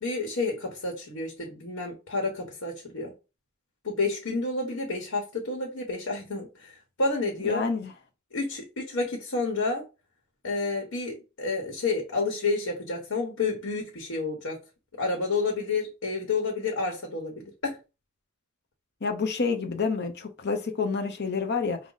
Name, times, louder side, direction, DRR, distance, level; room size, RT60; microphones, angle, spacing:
voice 1, 0.0-3.1 3.8-7.6 8.3-9.8 10.4-14.6 15.0-17.8, left 3 dB, 70° left, 1.1 m, -30 dB
voice 2, 7.4-7.9 19.0-21.8, left 4 dB, 50° left, 0.7 m, -28 dB
5.0 x 2.1 x 3.9 m
head